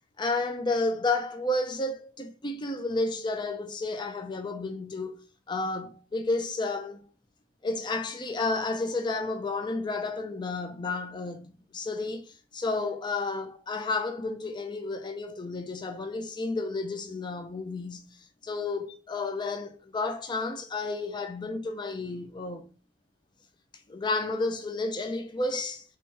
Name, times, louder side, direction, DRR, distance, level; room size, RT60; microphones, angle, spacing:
voice 1, 0.2-5.2 5.5-7.0 7.6-22.7 23.9-25.8, left 3 dB, 25° left, 0.4 m, -31 dB
3.0 x 3.0 x 4.5 m
head